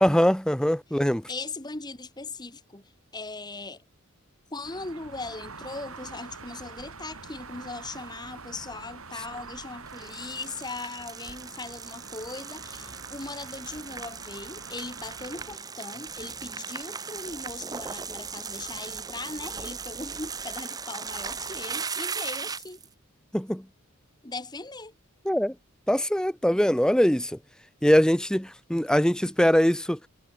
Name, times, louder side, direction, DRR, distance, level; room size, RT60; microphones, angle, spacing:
voice 1, 0.0-1.2 23.3-23.6 25.2-25.5 25.9-27.4 27.8-30.0, equal, 5° left, 0.9 m, -22 dB
voice 2, 1.3-3.8 4.5-22.8 24.2-24.9 29.2-29.3, left 3 dB, 20° left, 1.6 m, -39 dB
sound 1, 4.6-15.6, right 4 dB, 90° right, 6.5 m, -45 dB
sound 2, 9.9-22.9, right 5 dB, 20° right, 0.7 m, -38 dB
head